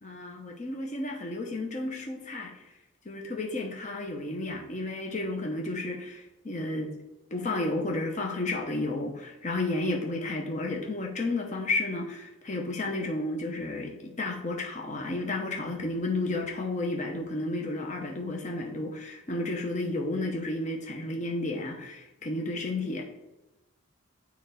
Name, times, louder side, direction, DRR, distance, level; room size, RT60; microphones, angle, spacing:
voice 1, 0.0-2.6 3.0-6.9 7.3-23.0, left 2 dB, 35° left, 1 dB, 0.7 m, -32 dB
6.7 x 3.4 x 5.0 m, 0.95 s
head